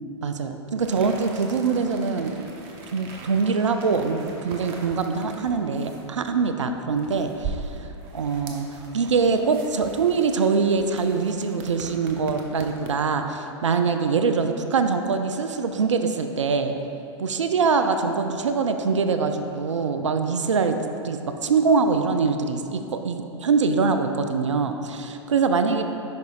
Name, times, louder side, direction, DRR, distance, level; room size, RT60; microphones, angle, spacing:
voice 1, 0.2-2.4 2.9-8.7 8.9-16.7 17.2-20.8 21.0-25.8, right 5 dB, 75° right, 7 dB, 0.4 m, -23 dB
sound 1, 0.8-13.2, right 4 dB, 40° right, 0.8 m, -41 dB
10.5 x 5.2 x 2.4 m, 3.0 s
figure-of-eight pair, 100°, 16 cm